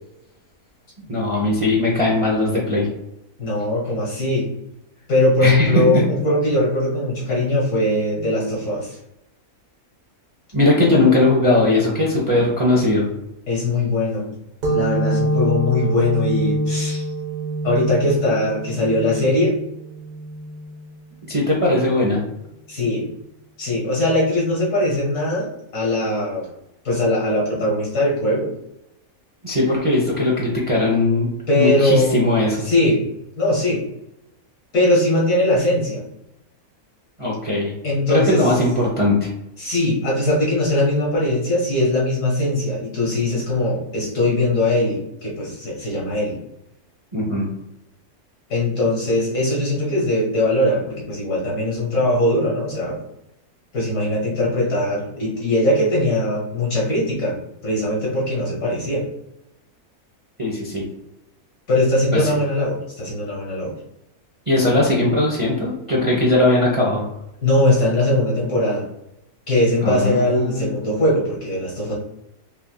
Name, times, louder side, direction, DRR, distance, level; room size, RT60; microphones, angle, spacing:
voice 1, 1.1-2.9 5.4-5.8 10.5-13.0 21.3-22.2 29.4-31.3 31.6-32.6 37.2-37.7 38.1-39.3 47.1-47.5 60.4-60.8 62.1-62.3 64.5-67.0 69.8-70.7, left 2 dB, 30° right, -4 dB, 0.6 m, -19 dB
voice 2, 3.4-4.5 5.1-9.0 13.5-14.3 14.7-17.1 17.6-19.6 22.7-23.1 23.6-26.5 26.8-28.5 31.5-33.0 33.4-33.8 34.7-36.1 37.8-38.5 39.6-46.4 48.5-53.0 53.7-57.4 57.6-59.0 61.7-63.7 67.4-68.8 69.5-72.0, left 1 dB, 75° left, -4 dB, 2.0 m, -20 dB
sound 1, 14.6-21.9, right 1 dB, 70° right, 1.5 m, -26 dB
5.7 x 2.7 x 2.2 m, 0.88 s
omnidirectional pair, 1.6 m